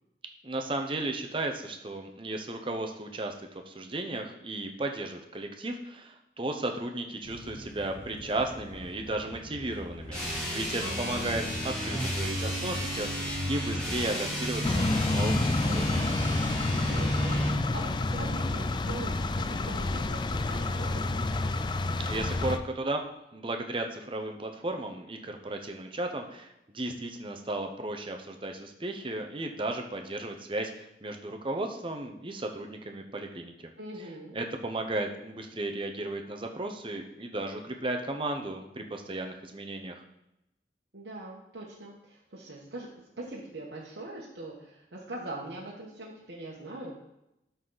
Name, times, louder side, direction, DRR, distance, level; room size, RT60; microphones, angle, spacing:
voice 1, 0.4-16.1 22.0-23.0 23.3-33.7 34.3-40.0, right 2 dB, 30° right, 4 dB, 0.8 m, -35 dB
sound 1, 7.2-14.1, equal, 65° left, 3.1 m, -44 dB
sound 2, 10.1-17.6, equal, 5° left, 2.8 m, -32 dB
voice 2, 10.8-11.3 16.9-21.4 33.8-34.4 40.9-42.9 43.2-47.0, right 2 dB, 85° right, -5 dB, 1.4 m, -42 dB
sound 3, 14.6-22.6, left 2 dB, 25° left, 0.3 m, -29 dB
12.5 x 4.1 x 4.0 m, 0.86 s
head